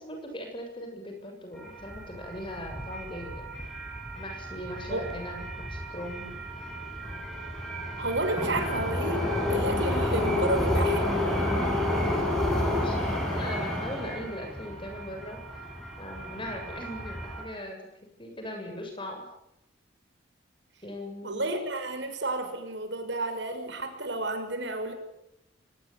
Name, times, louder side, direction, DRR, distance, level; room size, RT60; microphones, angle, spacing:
voice 1, 0.0-3.5 4.2-6.3 11.9-15.7 16.0-17.8 18.2-19.3 20.8-21.5, left 1 dB, 25° left, 4 dB, 7.3 m, -39 dB
sound 1, 1.6-17.4, left 1 dB, ahead, 8.0 m, -31 dB
voice 2, 8.0-11.1 21.2-24.9, right 2 dB, 70° right, 7 dB, 5.8 m, -31 dB
24.5 x 19.5 x 9.3 m, 0.82 s
head